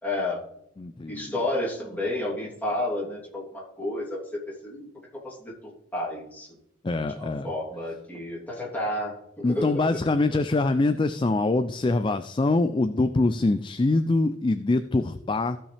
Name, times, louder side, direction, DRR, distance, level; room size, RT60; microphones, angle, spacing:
voice 1, 0.0-0.4 1.1-4.8 5.2-6.5 7.1-10.0, left 1 dB, 10° left, -5 dB, 3.1 m, -31 dB
voice 2, 0.8-1.3 6.8-7.5 9.4-15.6, left 2 dB, 25° left, 10 dB, 0.4 m, -24 dB
15.0 x 5.5 x 3.4 m, 0.79 s
head